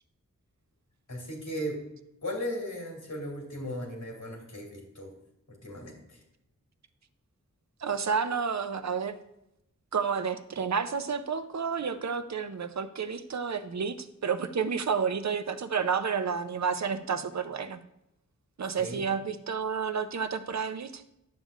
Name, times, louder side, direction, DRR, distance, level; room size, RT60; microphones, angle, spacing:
voice 1, 1.1-1.8 2.2-5.1 5.6-6.2 18.8-19.0, equal, 75° left, -1 dB, 2.6 m, -36 dB
voice 2, 7.8-9.2 9.9-17.8 18.6-21.0, right 6 dB, 55° right, 11 dB, 0.6 m, -30 dB
11.0 x 7.2 x 2.4 m, 0.86 s
wide cardioid pair, 80°, 33 cm